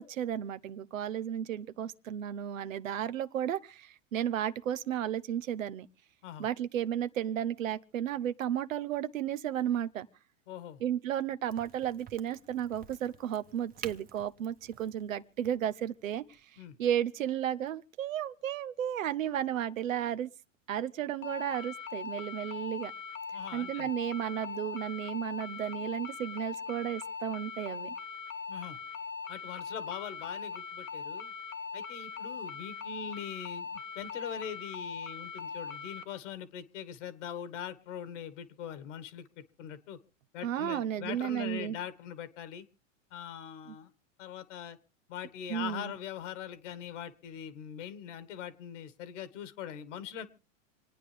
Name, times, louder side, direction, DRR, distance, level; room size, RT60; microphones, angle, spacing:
voice 1, 0.0-5.9 6.4-10.1 10.8-16.4 16.8-20.3 20.7-22.9 23.5-27.9 40.4-41.8 43.7-43.8 45.5-46.0, right 10 dB, 90° right, 0.8 m, -33 dB
voice 2, 10.5-10.8 16.6-16.8 23.3-23.9 28.5-28.8 29.3-31.3 31.7-40.0 40.3-42.7 43.1-43.9 44.2-44.8 45.1-50.3, left 9 dB, 70° left, 1.7 m, -42 dB
Crack, 11.5-16.9, right 8 dB, 20° right, 1.1 m, -51 dB
sound 1, 21.2-36.0, left 5 dB, 85° left, 1.5 m, -41 dB
27.5 x 9.4 x 3.4 m
hypercardioid pair, 110°, 39 cm